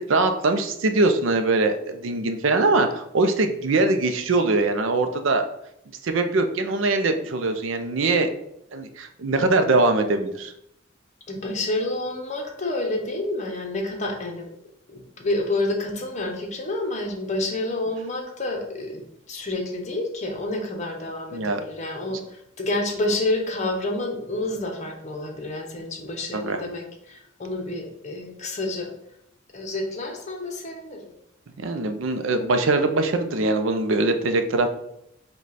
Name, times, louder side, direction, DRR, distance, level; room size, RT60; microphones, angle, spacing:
voice 1, 0.0-5.4 6.0-8.3 8.7-10.5 21.3-21.6 26.3-26.6 31.6-34.7, right 2 dB, 70° right, 7 dB, 0.5 m, -22 dB
voice 2, 11.3-14.5 14.9-28.9 29.5-31.1, left 2 dB, 35° left, 2 dB, 0.8 m, -29 dB
5.0 x 2.3 x 4.1 m, 0.77 s
head